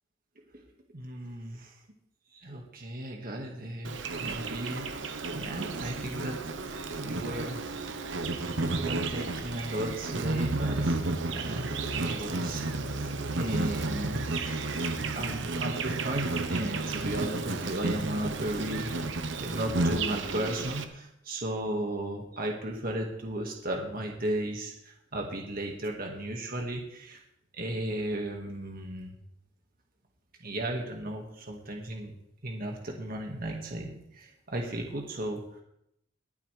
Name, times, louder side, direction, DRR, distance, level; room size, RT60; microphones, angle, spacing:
voice 1, 0.9-1.8 2.3-6.4 6.6-8.3 8.6-27.2 27.5-29.1 30.4-32.1 32.4-35.6, right 1 dB, 45° right, 1 dB, 1.8 m, -35 dB
Insect, 3.8-20.8, right 3 dB, 65° right, 1.0 m, -32 dB
21.5 x 8.4 x 3.4 m, 0.78 s
head